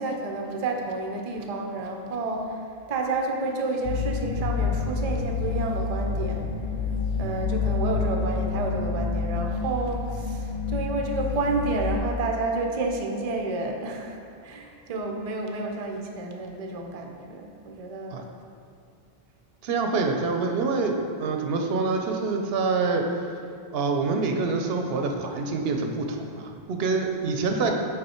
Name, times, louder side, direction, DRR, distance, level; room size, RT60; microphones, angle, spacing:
voice 1, 0.0-2.6 2.9-6.5 7.2-18.3, right 3 dB, 45° right, 2 dB, 0.6 m, -30 dB
sound 1, 3.8-12.0, left 4 dB, 80° left, 0.8 m, -28 dB
voice 2, 19.6-23.0 23.7-27.7, right 4 dB, 75° right, 3 dB, 0.8 m, -26 dB
5.4 x 4.1 x 4.3 m, 2.4 s
omnidirectional pair, 1.0 m